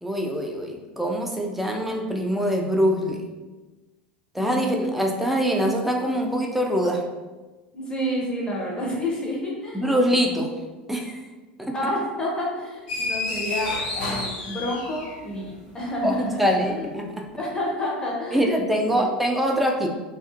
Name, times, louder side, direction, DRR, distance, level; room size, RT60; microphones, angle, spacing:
voice 1, 0.0-3.2 4.3-7.0 9.7-10.5 10.9-11.2 11.6-11.8 16.0-17.2 18.3-19.9, equal, 5° right, 1 dB, 0.4 m, -24 dB
voice 2, 4.4-4.8 7.7-9.9 11.7-16.9 17.4-18.6 18.9-19.1, left 1 dB, 15° left, -3 dB, 0.7 m, -29 dB
sound 1, 12.9-15.4, left 2 dB, 60° left, 0.7 m, -29 dB
2.5 x 2.4 x 2.5 m, 1.2 s
figure-of-eight pair, 80°, 5 cm